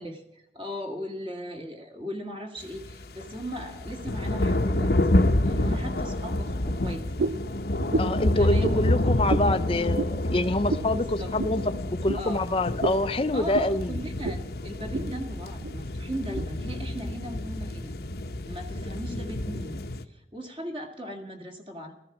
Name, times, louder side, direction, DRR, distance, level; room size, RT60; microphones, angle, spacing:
voice 1, 0.0-4.9 5.4-7.0 8.2-9.0 11.2-11.3 12.1-12.4 13.3-17.9 18.5-19.8 20.1-21.9, equal, 30° right, 3 dB, 2.0 m, -37 dB
sound 1, 2.6-20.0, left 1 dB, 60° left, 0.9 m, -28 dB
sound 2, 7.2-7.5 7.9-8.2 8.6-8.8 9.3-9.5 9.9-10.1 10.7-10.9 11.4-11.6 12.1-12.2 12.8-13.0 13.5-13.7 14.2-14.4 14.7-15.1 15.6-15.7 16.3-16.5, right 3 dB, 65° right, 0.7 m, -29 dB
voice 2, 8.0-14.0, left 2 dB, 30° left, 9 dB, 0.6 m, -26 dB
16.0 x 14.0 x 6.0 m, 0.87 s
head